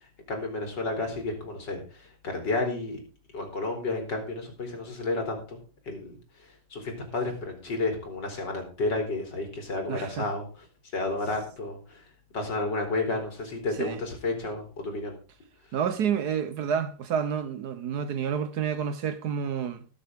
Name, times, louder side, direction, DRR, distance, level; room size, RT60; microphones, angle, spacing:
voice 1, 0.0-3.0 3.3-10.4 10.9-12.1 12.3-15.1, left 2 dB, 70° left, 4.0 m, -31 dB
voice 2, 9.9-10.3 13.8-14.0 15.7-19.9, right 7 dB, 65° right, 1.3 m, -29 dB
20.0 x 7.0 x 3.6 m
omnidirectional pair, 2.0 m